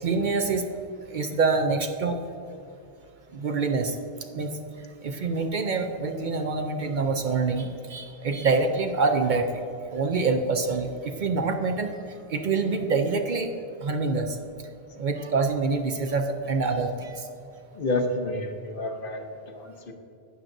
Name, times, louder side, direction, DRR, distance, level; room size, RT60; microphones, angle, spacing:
voice 1, 0.0-0.7 1.1-2.2 3.3-4.0 4.3-4.5 5.0-9.6 9.9-11.9 12.3-13.5 13.8-14.4 15.0-17.3, right 4 dB, 55° right, 5 dB, 0.6 m, -26 dB
voice 2, 17.7-19.9, left 2 dB, 60° left, 5 dB, 0.9 m, -30 dB
12.0 x 8.8 x 2.6 m, 2.6 s
omnidirectional pair, 1.1 m